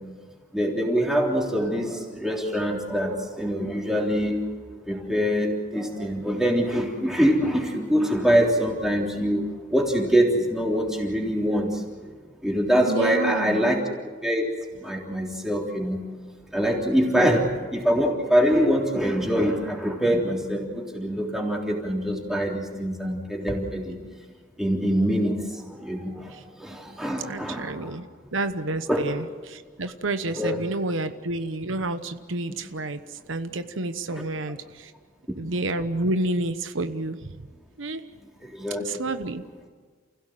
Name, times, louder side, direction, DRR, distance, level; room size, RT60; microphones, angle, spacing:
voice 1, 0.5-4.4 4.9-5.5 5.7-9.4 9.7-11.7 12.4-13.8 14.2-14.4 14.8-16.0 16.5-17.4 17.7-20.7 20.9-23.9 24.6-25.3 25.8-26.1 26.6-27.7 28.9-29.0 30.4-30.6 34.1-34.2 38.5-38.8, equal, ahead, -1 dB, 3.5 m, -24 dB
voice 2, 12.9-13.7 17.1-17.3 26.3-26.4 27.3-28.1 28.3-34.9 35.4-37.2 37.8-38.0 38.8-39.4, right 2 dB, 85° right, 10 dB, 1.1 m, -29 dB
29.5 x 16.0 x 7.7 m, 1.5 s
head